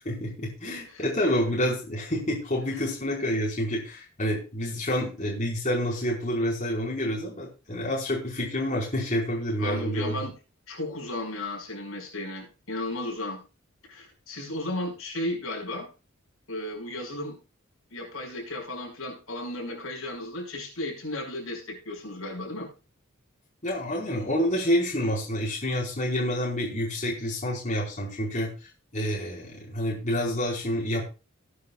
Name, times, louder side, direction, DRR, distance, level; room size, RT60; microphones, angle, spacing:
voice 1, 0.0-10.2 23.6-28.5 28.9-31.0, equal, 35° left, -3 dB, 4.6 m, -28 dB
voice 2, 9.6-10.3 10.7-13.4 13.9-15.9 16.5-17.4 17.9-22.7, left 1 dB, 80° left, 0 dB, 5.5 m, -34 dB
19.0 x 9.7 x 2.4 m, 0.32 s
head